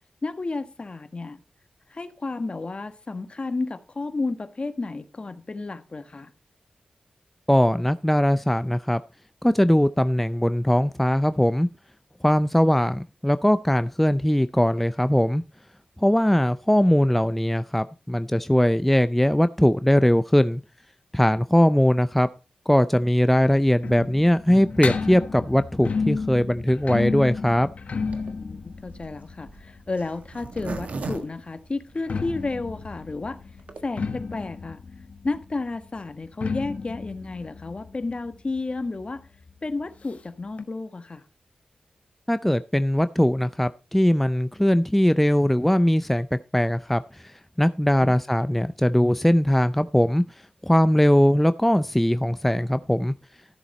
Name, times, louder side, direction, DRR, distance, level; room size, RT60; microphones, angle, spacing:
voice 1, 0.2-1.4 1.9-6.3 28.3-33.4 33.8-34.8 35.2-39.2 39.6-41.2 48.0-48.1, left 3 dB, 45° left, 1.4 m, -32 dB
voice 2, 7.5-9.0 9.4-11.7 12.2-15.4 16.0-20.6 21.1-22.3 22.7-27.7 42.3-50.2 50.6-53.1, equal, 5° left, 0.4 m, -20 dB
sound 1, 23.0-30.7 31.8-39.2 39.5-39.6 39.8-39.9 40.6-40.7, left 4 dB, 65° left, 1.2 m, -32 dB
Zipper (clothing), 28.1-32.4 32.9-33.0 33.1-33.2 33.5-33.8, right 3 dB, 70° right, 1.4 m, -37 dB
13.5 x 7.0 x 4.2 m
cardioid pair, 50°, 3 cm